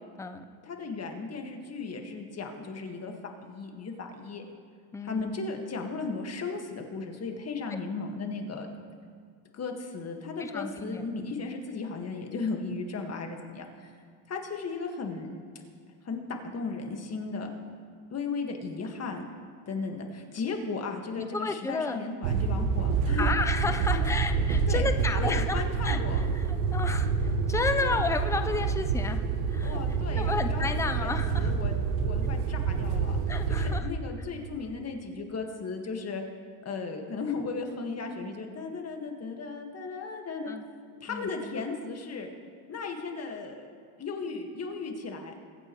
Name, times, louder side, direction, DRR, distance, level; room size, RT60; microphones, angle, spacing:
voice 1, 0.6-3.1 3.4-4.4 5.0-8.7 9.5-13.9 14.3-15.3 16.0-17.5 18.1-19.3 19.7-23.3 23.9-24.1 24.7-24.9 25.1-26.2 27.8-28.0 29.6-33.2 33.5-36.2 36.6-40.5 41.0-42.3 42.7-43.7 44.0-45.3, left 4 dB, 30° left, 3 dB, 1.8 m, -36 dB
voice 2, 4.9-5.3 10.4-11.3 21.2-22.0 23.2-29.2 29.5-31.5 33.3-33.9 40.5-40.7 41.1-41.3, left 4 dB, 5° left, 8 dB, 0.5 m, -32 dB
sound 1, 22.2-33.8, right 5 dB, 85° right, 1.1 m, -27 dB
23.0 x 8.7 x 3.2 m, 2.1 s
supercardioid pair, 110°, 48 cm